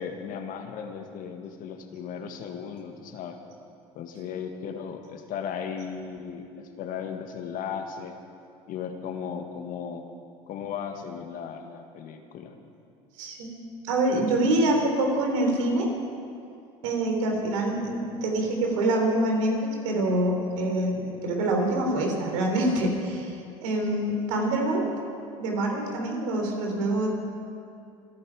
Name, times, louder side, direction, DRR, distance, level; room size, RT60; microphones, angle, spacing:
voice 1, 0.0-3.4 4.0-8.2 8.7-10.1 10.5-12.5 20.7-20.8, left 7 dB, 60° left, 5 dB, 1.9 m, -36 dB
voice 2, 13.2-13.5 13.8-15.9 16.8-24.8 25.4-27.1, right 1 dB, 80° right, 1 dB, 3.9 m, -25 dB
27.5 x 10.5 x 4.9 m, 2.5 s
hypercardioid pair, 80°, 16 cm